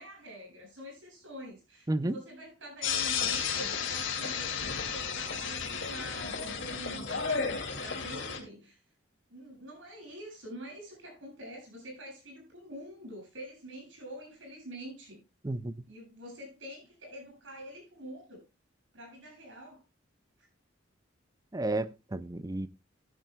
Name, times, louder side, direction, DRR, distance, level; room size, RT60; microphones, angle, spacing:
voice 1, 0.0-4.6 4.9-8.8 9.3-15.2 15.9-18.4 18.9-19.8, equal, 75° right, 7.4 m, -46 dB
voice 2, 1.9-2.2 15.4-15.9 21.5-22.7, right 2 dB, 20° right, 0.5 m, -32 dB
sound 1, 2.8-8.4, left 6 dB, 70° left, 2.4 m, -33 dB
15.0 x 11.0 x 2.3 m
head